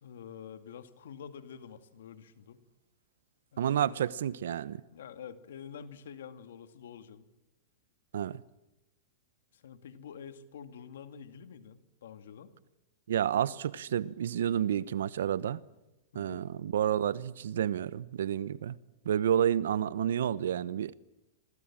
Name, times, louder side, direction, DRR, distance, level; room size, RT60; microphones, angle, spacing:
voice 1, 0.0-2.6 3.5-4.0 4.7-7.3 9.5-12.5 16.1-16.5, left 7 dB, 80° left, 2.4 m, -48 dB
voice 2, 3.6-4.8 8.1-8.4 13.1-15.6 16.1-18.8 19.0-20.9, right 10 dB, 80° right, 1.0 m, -30 dB
27.5 x 24.5 x 7.5 m
hypercardioid pair, 135°, 0 cm